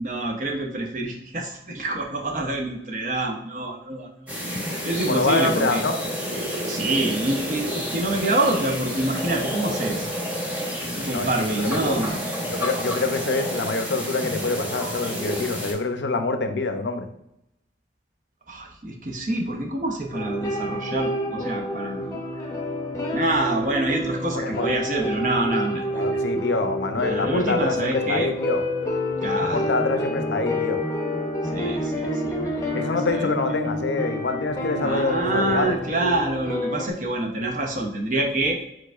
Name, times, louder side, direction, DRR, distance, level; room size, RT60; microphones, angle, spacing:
voice 1, 0.0-4.4 4.6-5.8 6.7-10.1 11.0-12.2 18.5-22.1 23.1-26.0 27.0-28.3 29.2-29.7 31.4-33.3 34.8-38.6, right 2 dB, 45° right, 2 dB, 0.7 m, -27 dB
sound 1, 4.3-15.7, equal, 10° right, 1.1 m, -30 dB
voice 2, 5.1-6.0 11.1-11.9 12.4-17.1 24.3-24.7 25.9-28.6 29.4-30.8 32.7-36.0, left 3 dB, 75° left, 7 dB, 0.6 m, -26 dB
sound 2, 20.1-36.9, left 1 dB, 20° left, 0.7 m, -28 dB
4.7 x 4.3 x 2.4 m, 0.81 s
head